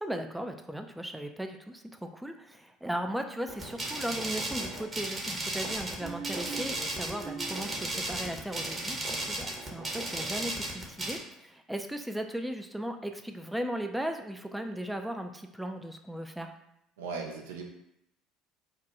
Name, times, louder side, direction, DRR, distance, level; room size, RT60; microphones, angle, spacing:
voice 1, 0.0-16.5, right 1 dB, 5° right, 5 dB, 0.3 m, -37 dB
sound 1, 3.5-11.2, right 2 dB, 25° right, 0.9 m, -35 dB
sound 2, 6.0-8.4, right 4 dB, 60° right, 0.9 m, -42 dB
voice 2, 17.0-17.6, right 4 dB, 75° right, 2 dB, 0.5 m, -37 dB
2.8 x 2.2 x 3.7 m, 0.79 s
hypercardioid pair, 65°, 0 cm